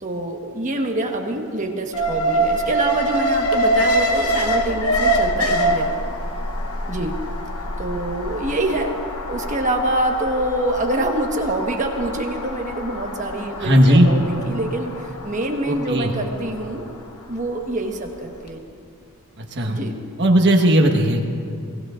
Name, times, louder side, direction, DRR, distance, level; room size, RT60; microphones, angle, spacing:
voice 1, 0.0-5.9 6.9-7.1 7.8-9.0 9.3-16.8 17.3-18.6 19.7-20.0, right 1 dB, 35° right, 2 dB, 1.3 m, -25 dB
Alarm, 1.9-18.0 18.4-18.5, right 1 dB, 70° left, 1.0 m, -25 dB
voice 2, 13.6-14.1 15.7-16.1 19.4-19.8 20.2-21.2, equal, 55° right, 2 dB, 1.4 m, -16 dB
23.5 x 16.5 x 2.5 m, 2.4 s
head